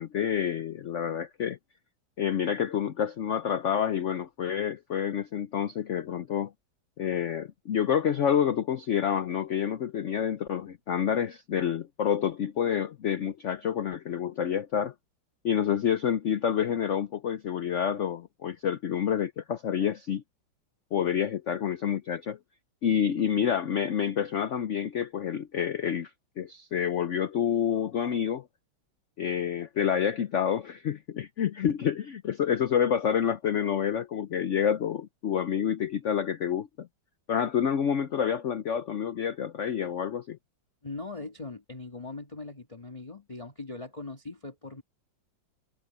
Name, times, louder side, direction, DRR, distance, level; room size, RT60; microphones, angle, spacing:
voice 1, 0.0-1.6 2.2-6.5 7.0-14.9 15.4-20.2 20.9-22.4 22.8-26.1 26.4-28.4 29.2-36.9 37.3-40.4, left 8 dB, 70° left, 0.6 m, -28 dB
voice 2, 40.8-44.8, left 3 dB, 20° left, 1.7 m, -40 dB
omnidirectional pair, 2.1 m